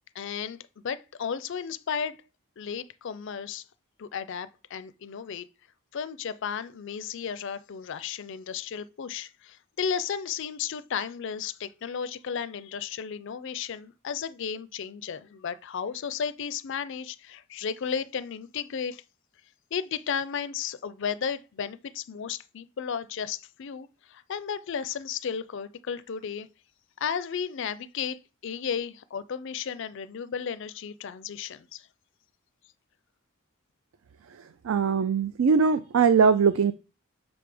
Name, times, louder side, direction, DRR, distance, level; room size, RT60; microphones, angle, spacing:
voice 1, 0.1-0.6 0.8-2.2 2.6-3.6 4.0-5.5 5.9-19.0 19.7-26.5 27.0-31.9, left 7 dB, 55° left, 0.4 m, -34 dB
voice 2, 34.6-36.7, right 6 dB, 70° right, 0.4 m, -21 dB
6.1 x 3.4 x 5.1 m
head